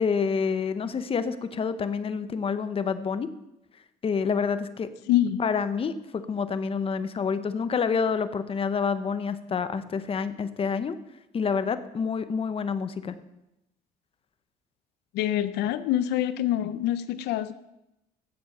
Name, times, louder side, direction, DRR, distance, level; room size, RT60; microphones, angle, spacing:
voice 1, 0.0-3.3 4.0-4.9 5.4-11.0 11.3-13.2, left 5 dB, 35° left, 12 dB, 0.9 m, -28 dB
voice 2, 5.1-5.4 15.1-17.5, left 12 dB, 90° left, 13 dB, 0.6 m, -25 dB
16.0 x 7.7 x 5.8 m, 0.89 s
cardioid pair, 110°, 17 cm